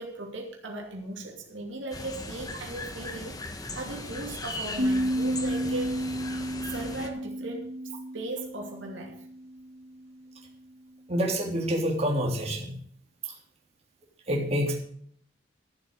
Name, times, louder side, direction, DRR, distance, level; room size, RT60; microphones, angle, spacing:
voice 1, 0.0-6.2 6.7-7.7 8.1-9.2, right 2 dB, 75° right, 1 dB, 2.7 m, -38 dB
sound 1, 1.9-7.1, left 2 dB, 20° left, 1.4 m, -38 dB
sound 2, 4.8-9.9, equal, 50° right, 2.6 m, -32 dB
voice 2, 11.1-12.7 14.3-14.8, equal, 35° right, -1 dB, 3.3 m, -27 dB
13.5 x 7.9 x 6.5 m, 0.63 s
head